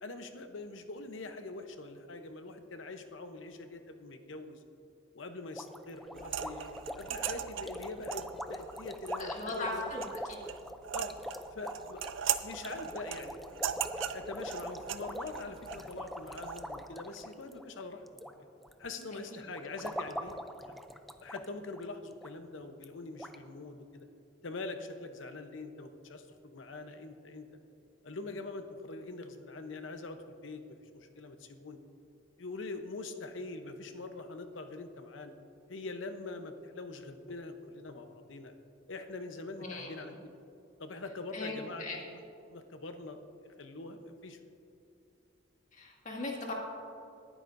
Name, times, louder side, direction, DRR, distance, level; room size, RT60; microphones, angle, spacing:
voice 1, 0.0-4.6 5.1-9.9 10.9-11.1 11.5-12.0 12.4-13.8 14.1-18.5 18.8-20.8 21.2-24.1 24.4-27.5 28.0-31.8 32.4-35.3 35.7-38.5 38.9-40.3 40.8-42.2 42.5-44.4, left 3 dB, 85° left, 7 dB, 0.8 m, -44 dB
sound 1, 5.6-18.3 18.6-19.0 19.5-21.4 21.7-21.8 22.2-22.3 22.8-22.9 23.2-23.4, equal, ahead, 0.4 m, -42 dB
sound 2, 6.1-16.7, right 10 dB, 80° right, 0.5 m, -40 dB
voice 2, 9.2-10.0 10.3-10.4 19.3-19.4 39.6-40.1 41.3-42.0 45.7-46.5, left 2 dB, 40° left, -1 dB, 2.0 m, -38 dB
19.5 x 9.9 x 2.6 m, 2.7 s
head